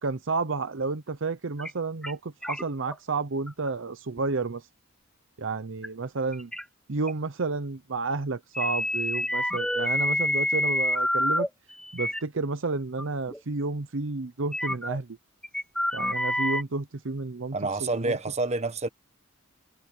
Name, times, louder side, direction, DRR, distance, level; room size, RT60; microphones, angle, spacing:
voice 1, 0.0-4.6 5.4-6.5 6.9-11.5 11.9-15.2 15.9-17.6 17.8-18.1, right 3 dB, 65° right, 0.8 m, -31 dB
sound 1, 1.6-1.7 2.0-2.1 2.4-2.9 3.5-3.7 4.2-4.3 5.8-5.9 6.3-6.6 7.1-7.2 8.5-11.5 11.9-12.2 13.0-13.1 13.3-13.4 14.5-15.0 15.4-16.6, left 1 dB, 5° left, 0.9 m, -27 dB
voice 2, 17.5-18.9, right 3 dB, 30° right, 1.2 m, -28 dB
head